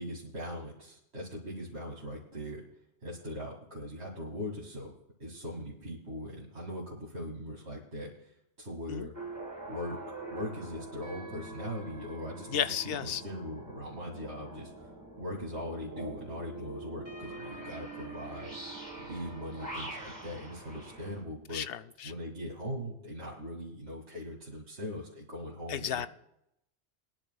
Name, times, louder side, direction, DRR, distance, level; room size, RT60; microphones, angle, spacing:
voice 1, 0.0-2.6 3.0-4.9 5.2-9.1 9.7-10.0 10.3-12.6 13.0-14.9 15.2-18.5 19.0-21.7 22.0-26.0, equal, 65° right, -5 dB, 2.7 m, -40 dB
sound 1, 9.1-21.2, right 2 dB, 15° right, 1.8 m, -44 dB
voice 2, 12.5-13.2 21.5-22.1 25.7-26.1, left 9 dB, 65° left, 12 dB, 0.7 m, -33 dB
22.0 x 10.5 x 2.4 m, 0.80 s
omnidirectional pair, 1.2 m